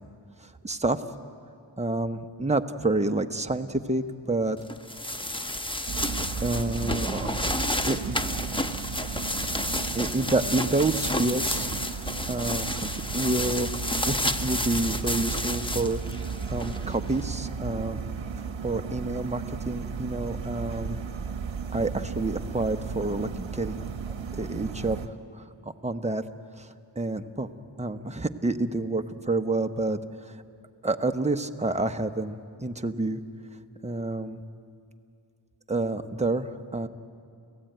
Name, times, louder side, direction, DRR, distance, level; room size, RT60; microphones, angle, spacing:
voice 1, 0.4-1.0 1.8-4.6 6.4-7.4 7.9-8.4 9.9-13.7 14.1-18.0 18.6-21.0 21.7-23.9 24.4-26.2 26.6-26.7 27.0-27.5 27.8-30.4 30.8-33.2 33.8-34.4 35.7-36.9, right 2 dB, 15° right, 6 dB, 1.0 m, -29 dB
sound 1, 4.7-17.2, left 1 dB, 10° left, 0.9 m, -31 dB
sound 2, 5.9-25.1, right 6 dB, 65° right, 1.1 m, -35 dB
30.0 x 16.5 x 9.2 m, 2.4 s
wide cardioid pair, 70°, 49 cm